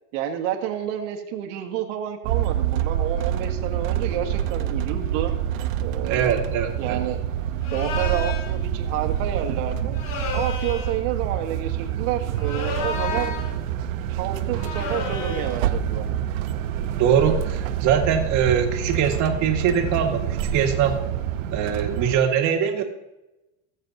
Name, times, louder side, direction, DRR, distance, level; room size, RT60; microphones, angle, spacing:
voice 1, 0.1-5.3 5.8-6.4 6.8-7.2 7.7-10.0 10.3-13.4 14.1-16.1, right 10 dB, 70° right, 3 dB, 1.6 m, -29 dB
sound 1, 2.2-22.2, right 10 dB, 85° right, 0.9 m, -27 dB
voice 2, 6.1-7.0 17.0-20.9 21.5-22.8, right 8 dB, 50° right, 3 dB, 1.7 m, -22 dB
sound 2, 7.6-8.5 9.9-11.0 12.4-13.6 14.6-15.6, left 5 dB, 55° left, 1.8 m, -32 dB
19.5 x 7.3 x 2.7 m, 0.99 s
supercardioid pair, 150°, 38 cm